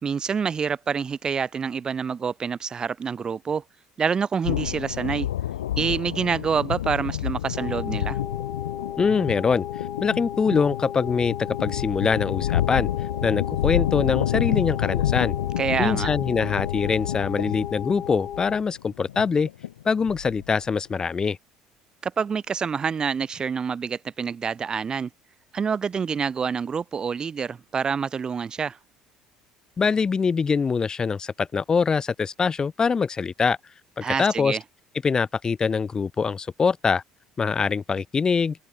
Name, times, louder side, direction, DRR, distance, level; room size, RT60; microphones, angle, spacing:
voice 1, 0.0-3.6 4.0-5.3 5.8-8.2 15.6-16.1 22.0-25.1 25.5-28.8 34.0-34.6, right 6 dB, 35° right, 1.3 m, -27 dB
sound 1, 4.4-20.6, left 12 dB, 80° left, 0.6 m, -29 dB
sound 2, 7.6-18.6, left 10 dB, 45° left, 3.1 m, -36 dB
voice 2, 9.0-9.6 10.0-12.9 13.2-15.3 15.8-19.5 19.8-21.4 29.8-33.6 34.0-34.6 35.0-37.0 37.4-38.6, left 5 dB, 30° left, 5.0 m, -23 dB
figure-of-eight pair, 60°, 2 cm